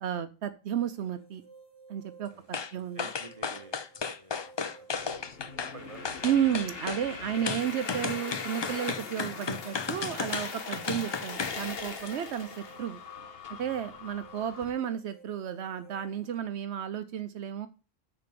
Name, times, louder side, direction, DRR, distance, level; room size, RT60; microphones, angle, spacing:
voice 1, 0.0-1.4 1.9-3.1 6.2-13.0 13.6-17.7, right 9 dB, 80° right, 10 dB, 0.9 m, -32 dB
sound 1, 0.8-16.4, right 4 dB, 5° left, 1.5 m, -56 dB
sound 2, 2.5-2.7 3.0-5.7 6.0-7.0 7.5-11.6 12.0-12.1, left 5 dB, 45° left, 0.3 m, -34 dB
voice 2, 2.7-3.8 4.1-5.0 5.7-6.5 7.4-7.5, right 2 dB, 30° right, 7 dB, 1.2 m, -51 dB
sound 3, 4.9-14.7, left 4 dB, 60° left, 1.3 m, -41 dB
6.8 x 5.0 x 6.7 m, 0.34 s
omnidirectional pair, 1.1 m